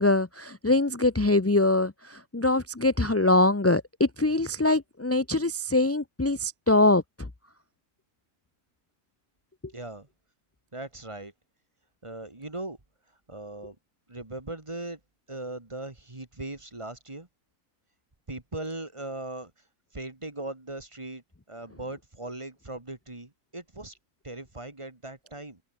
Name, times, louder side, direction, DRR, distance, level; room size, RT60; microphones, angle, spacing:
voice 1, 0.0-7.3, left 2 dB, 15° left, 0.5 m, -23 dB
voice 2, 9.7-10.1 10.7-11.3 12.0-12.8 13.3-13.8 14.1-15.0 15.3-17.3 18.3-19.5 19.9-24.0 24.2-25.6, right 2 dB, 20° right, 2.0 m, -39 dB
open air
omnidirectional pair, 1.6 m